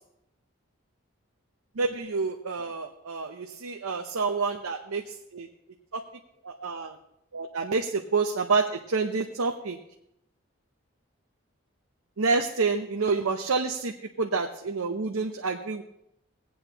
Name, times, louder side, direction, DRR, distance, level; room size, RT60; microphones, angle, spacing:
voice 1, 1.8-5.5 5.9-6.0 6.4-6.9 7.3-9.8 12.2-15.8, right 4 dB, 85° right, 3 dB, 0.7 m, -28 dB
19.0 x 8.7 x 2.9 m, 0.79 s
head